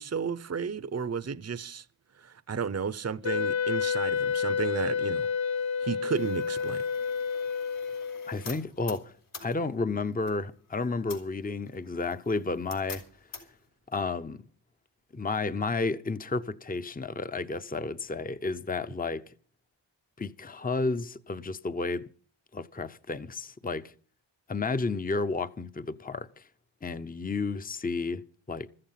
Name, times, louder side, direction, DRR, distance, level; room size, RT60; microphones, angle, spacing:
voice 1, 0.0-1.8 2.2-5.3 5.8-6.8, right 6 dB, 30° right, 0.7 m, -33 dB
Wind instrument woodwind instrument, 3.2-8.4, left 6 dB, 65° left, 0.7 m, -30 dB
sound 1, 6.1-13.7, left 4 dB, 80° left, 5.5 m, -48 dB
voice 2, 8.3-9.1 9.4-13.0 13.9-14.4 15.1-19.3 20.2-22.1 22.5-23.9 24.5-26.5 26.8-28.7, left 3 dB, 15° left, 0.7 m, -32 dB
14.5 x 14.5 x 5.8 m
wide cardioid pair, 80°, 50 cm